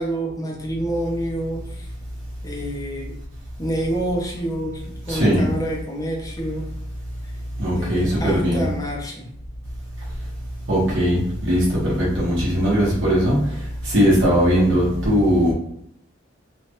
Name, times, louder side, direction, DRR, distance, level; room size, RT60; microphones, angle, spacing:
voice 1, 0.0-1.9 2.4-3.1 3.6-6.7 7.7-9.3, right 1 dB, 20° left, -1 dB, 0.6 m, -28 dB
voice 2, 5.1-5.4 7.6-8.7 10.7-15.5, equal, 70° right, -7 dB, 1.1 m, -19 dB
3.1 x 2.4 x 2.8 m, 0.71 s
head